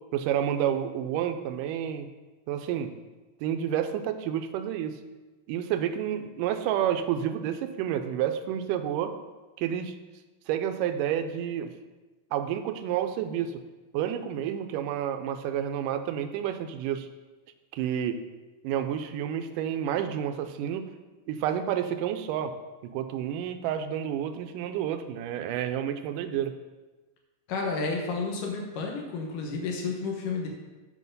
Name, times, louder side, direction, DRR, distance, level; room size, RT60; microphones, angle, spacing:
voice 1, 0.1-2.1 2.5-2.9 3.4-5.0 5.5-9.1 9.6-10.0 10.5-11.7 12.3-13.6 13.9-17.1 17.7-18.2 18.6-20.9 21.3-22.5 22.8-26.5, right 10 dB, 80° right, 8 dB, 2.1 m, -30 dB
voice 2, 27.5-30.5, left 4 dB, 75° left, 0 dB, 2.7 m, -31 dB
8.5 x 5.7 x 5.3 m, 1.2 s
omnidirectional pair, 3.9 m